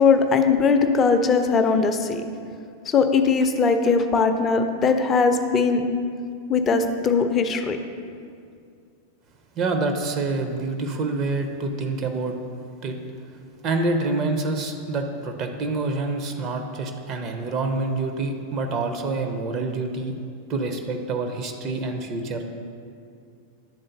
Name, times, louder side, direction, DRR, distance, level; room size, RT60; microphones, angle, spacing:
voice 1, 0.0-2.2 2.9-5.8 6.5-7.8, left 5 dB, 25° left, 7 dB, 0.5 m, -20 dB
voice 2, 9.6-12.4 12.8-13.0 13.6-20.1 20.5-22.4, right 3 dB, 35° right, 5 dB, 0.6 m, -27 dB
10.0 x 3.8 x 3.9 m, 2.3 s
figure-of-eight pair, 90°, 0 cm